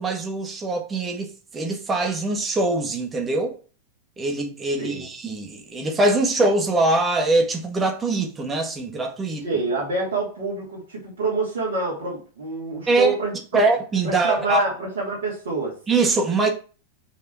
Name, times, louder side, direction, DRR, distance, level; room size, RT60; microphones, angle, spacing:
voice 1, 0.0-3.6 4.2-9.5 12.9-13.1 13.5-14.6 15.9-16.5, right 2 dB, 20° right, 1.8 m, -23 dB
voice 2, 9.4-13.6 14.0-15.8, right 3 dB, 60° right, 2.9 m, -27 dB
6.0 x 4.8 x 4.5 m
figure-of-eight pair, 90°, 0 cm